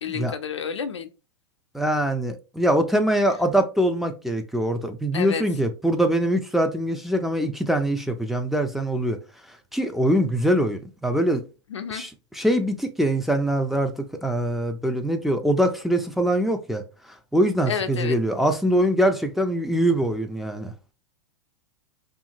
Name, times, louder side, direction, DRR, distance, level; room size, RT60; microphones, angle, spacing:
voice 1, 0.0-1.1 5.1-5.4 11.7-12.0 17.7-18.2, left 7 dB, 90° left, 0.4 m, -30 dB
voice 2, 1.7-9.2 9.7-11.4 11.9-12.1 12.4-16.8 17.3-20.7, right 1 dB, ahead, 0.3 m, -23 dB
2.8 x 2.4 x 2.7 m
hypercardioid pair, 105°, 15 cm